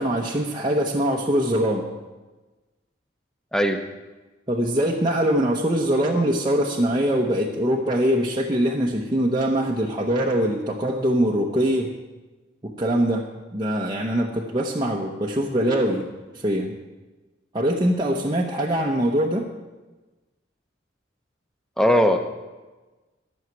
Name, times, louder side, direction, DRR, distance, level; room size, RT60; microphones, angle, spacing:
voice 1, 0.0-1.9 4.5-11.9 12.6-13.3 13.5-16.1 16.3-16.7 17.5-19.5, equal, 25° right, -2 dB, 0.9 m, -23 dB
voice 2, 21.8-22.2, equal, 5° left, 6 dB, 0.9 m, -18 dB
12.5 x 6.4 x 9.0 m, 1.2 s
head